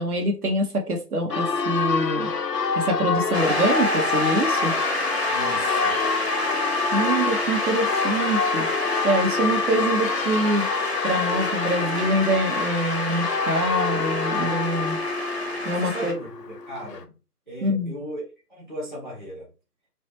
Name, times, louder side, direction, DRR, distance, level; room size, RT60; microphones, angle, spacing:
voice 1, 0.0-2.3 2.8-4.7 6.9-8.7 9.0-10.6 11.0-15.0 15.6-16.2 17.6-17.9, right 1 dB, 65° right, 3 dB, 0.9 m, -25 dB
Church bell, 1.3-17.0, left 5 dB, 90° left, 0.6 m, -27 dB
Shout / Cheering / Applause, 3.3-16.1, left 1 dB, 45° left, 0.4 m, -28 dB
voice 2, 5.3-6.0 15.6-17.2 17.5-18.2 18.5-19.5, right 1 dB, 30° right, -5 dB, 0.6 m, -37 dB
2.3 x 2.2 x 2.9 m, 0.33 s
figure-of-eight pair, 160°, 48 cm